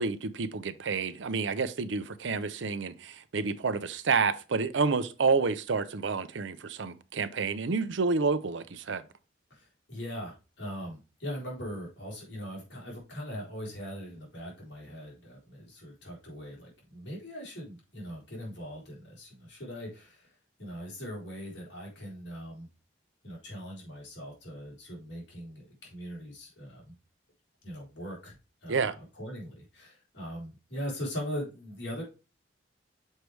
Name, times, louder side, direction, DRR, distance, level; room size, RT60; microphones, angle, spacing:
voice 1, 0.0-9.0 28.7-29.0, right 4 dB, 80° right, 0.6 m, -29 dB
voice 2, 9.5-22.7 23.2-27.0 27.6-28.4 28.6-28.9 29.2-32.0, equal, 70° left, 3.6 m, -40 dB
6.5 x 4.7 x 3.2 m
head